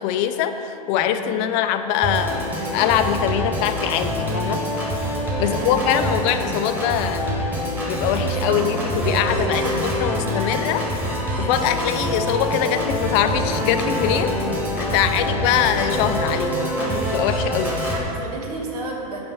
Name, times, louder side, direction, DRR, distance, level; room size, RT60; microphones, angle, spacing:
voice 1, 0.0-4.7 5.4-7.4 7.9-10.8 11.4-14.4 14.7-17.8, left 10 dB, 50° left, 9 dB, 0.5 m, -23 dB
Organ, 2.0-18.0, equal, 10° right, 1.6 m, -25 dB
voice 2, 5.3-5.9 8.5-8.7 9.0-11.0 14.9-15.2 17.9-19.2, right 2 dB, 80° right, -1 dB, 1.4 m, -33 dB
5.5 x 5.2 x 5.5 m, 2.7 s
hypercardioid pair, 105°, 20 cm